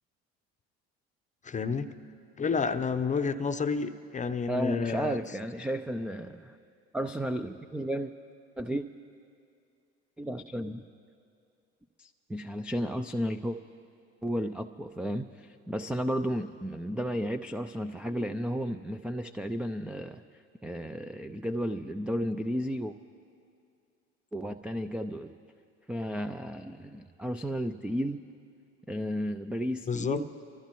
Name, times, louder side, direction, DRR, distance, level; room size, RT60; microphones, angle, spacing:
voice 1, 1.5-2.0 2.4-5.2 29.9-30.2, left 5 dB, 20° left, 11 dB, 0.7 m, -30 dB
voice 2, 4.5-6.6 6.9-8.1 8.6-8.9 10.2-10.8 12.0-13.6 14.2-20.2 20.6-22.9 24.3-25.3 25.9-28.2 28.9-30.3, equal, 5° right, 9 dB, 0.3 m, -33 dB
24.0 x 14.5 x 3.0 m, 2.4 s
hypercardioid pair, 75°, 33 cm